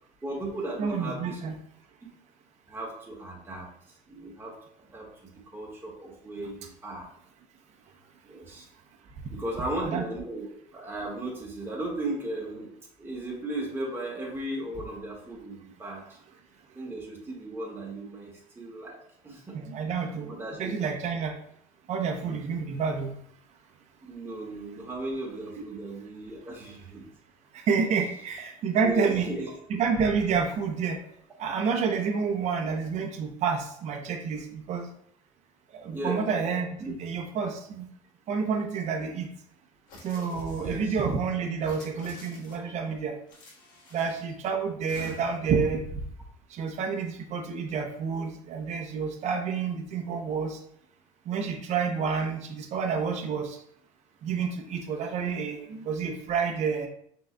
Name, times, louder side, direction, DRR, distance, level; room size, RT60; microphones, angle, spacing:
voice 1, 0.2-1.4 2.7-3.7 4.1-7.1 8.3-8.6 9.3-10.5 10.7-12.7 13.0-16.2 16.7-19.0 19.2-19.6 20.3-20.7 24.0-27.0 28.8-29.5 35.9-36.4 36.8-36.9 40.6-41.0, right 1 dB, 15° right, -2 dB, 1.6 m, -36 dB
voice 2, 0.8-1.5 9.8-10.0 19.5-21.3 21.9-23.1 27.5-29.3 29.7-31.0 31.4-34.9 35.7-36.7 37.0-37.9 38.3-39.3 40.0-43.1 43.9-45.8 46.5-50.6 51.3-53.6 54.2-56.9, right 5 dB, 55° right, 3 dB, 0.8 m, -29 dB
sound 1, 39.9-40.9 41.5-42.7 43.3-44.3 44.9-45.5, left 1 dB, 85° left, 1.5 m, -48 dB
6.0 x 3.9 x 2.3 m, 0.66 s
cardioid pair, 110°, 14 cm